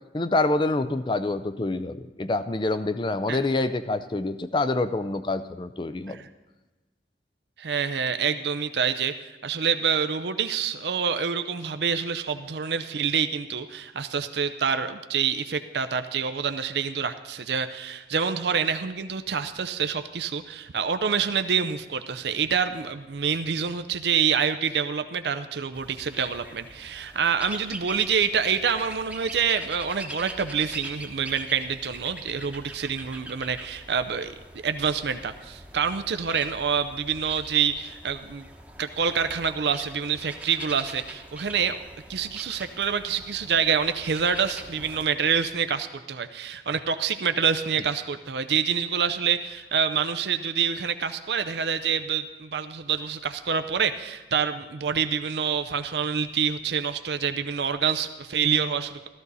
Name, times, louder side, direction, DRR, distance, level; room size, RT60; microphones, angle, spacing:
voice 1, 0.1-6.2, left 2 dB, 25° left, 11 dB, 0.4 m, -26 dB
voice 2, 7.6-34.3 34.6-38.4 38.8-41.8 42.1-59.1, right 6 dB, 75° right, 9 dB, 0.6 m, -27 dB
sound 1, 25.7-45.0, right 2 dB, 10° right, 0.9 m, -43 dB
14.5 x 14.0 x 4.1 m, 1.2 s
head